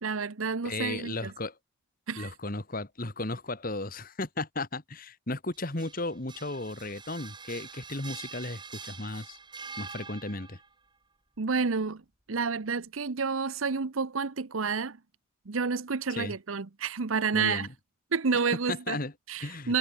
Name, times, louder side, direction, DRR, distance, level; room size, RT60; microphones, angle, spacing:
voice 1, 0.0-1.3 2.1-2.3 11.4-12.0 12.3-15.0 15.5-17.7 18.1-19.0 19.3-19.8, right 5 dB, 85° right, 0.9 m, -29 dB
voice 2, 0.6-1.6 2.2-9.4 9.8-10.6 16.2-16.3 17.3-17.7 18.7-19.1 19.4-19.7, left 2 dB, 45° left, 1.9 m, -35 dB
sound 1, 5.5-10.7, right 5 dB, 20° right, 7.7 m, -45 dB
head